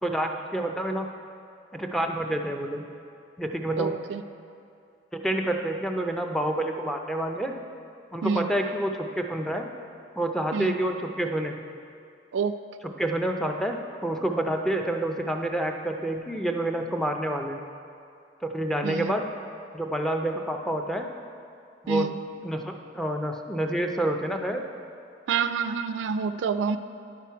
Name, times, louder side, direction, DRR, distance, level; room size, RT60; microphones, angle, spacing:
voice 1, 0.0-1.1 1.7-2.9 3.4-4.0 5.2-7.5 8.1-9.7 10.2-11.6 13.0-13.8 14.0-17.6 18.5-19.3 19.7-21.1 21.8-22.1 22.4-24.6, right 1 dB, ahead, 3 dB, 0.4 m, -28 dB
voice 2, 3.8-4.2 8.2-8.5 10.5-10.7 12.3-12.6 18.8-19.1 21.9-22.2 25.3-26.8, right 6 dB, 80° right, 11 dB, 0.3 m, -27 dB
10.0 x 5.9 x 4.6 m, 2.4 s
head